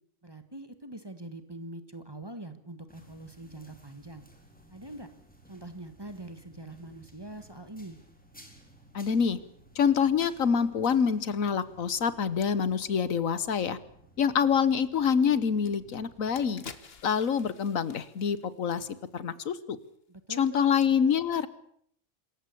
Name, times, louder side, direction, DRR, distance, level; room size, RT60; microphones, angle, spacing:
voice 1, 0.2-4.2 4.7-5.1 5.5-8.0 20.1-20.7, right 1 dB, 20° right, 9 dB, 1.7 m, -43 dB
sound 1, 2.9-16.5, right 1 dB, 5° left, 3.9 m, -56 dB
voice 2, 8.9-9.4 9.7-13.8 14.2-16.6 17.0-18.9 19.1-19.8 20.4-21.5, left 7 dB, 80° left, 16 dB, 1.5 m, -26 dB
sound 2, 15.6-15.7 16.1-19.4 19.7-19.9, left 5 dB, 50° left, 1.5 m, -49 dB
26.5 x 15.0 x 8.5 m, 0.67 s
omnidirectional pair, 1.4 m